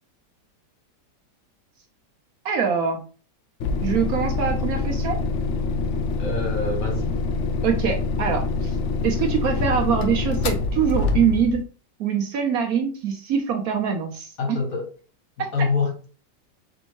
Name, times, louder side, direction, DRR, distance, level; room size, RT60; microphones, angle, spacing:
voice 1, 2.4-3.0 3.8-5.2 7.6-8.7 9.0-11.6 12.0-14.6, right 7 dB, 65° right, 1.0 m, -24 dB
sound 1, 3.6-11.6, left 3 dB, 80° left, 0.6 m, -25 dB
voice 2, 6.2-7.1 14.4-14.9 15.4-16.1, left 4 dB, 55° left, 1.2 m, -26 dB
5.3 x 2.7 x 2.9 m
omnidirectional pair, 1.9 m